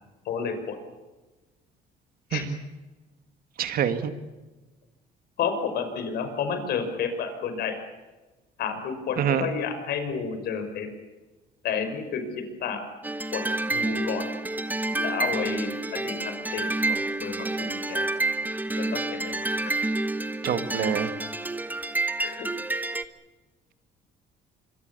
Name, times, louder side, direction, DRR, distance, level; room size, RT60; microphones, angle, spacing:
voice 1, 0.3-0.8 2.3-2.4 5.4-7.8 8.6-10.9 11.6-12.8 13.3-13.4 13.7-14.3 15.0-18.1 18.8-19.4 22.2-22.5, left 6 dB, 70° left, 7 dB, 5.6 m, -31 dB
voice 2, 3.6-4.1 9.2-9.5 20.4-21.1, right 9 dB, 60° right, 9 dB, 2.3 m, -26 dB
sound 1, 13.0-23.0, right 2 dB, 10° right, 1.2 m, -29 dB
25.5 x 24.0 x 7.1 m, 1.2 s
cardioid pair, 110°, 17 cm